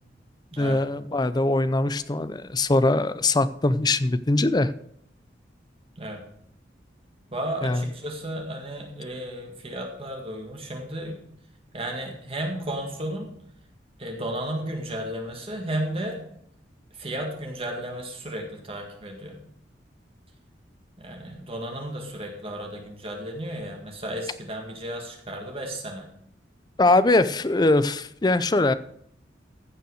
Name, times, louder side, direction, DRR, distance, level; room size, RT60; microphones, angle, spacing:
voice 1, 0.6-4.7 7.6-7.9 26.8-28.7, left 2 dB, 25° left, 15 dB, 0.5 m, -22 dB
voice 2, 7.3-11.2 11.7-13.3 14.0-16.2 17.0-19.4 21.0-26.1, right 1 dB, 30° right, 1 dB, 1.9 m, -33 dB
15.0 x 5.7 x 6.4 m, 0.70 s
head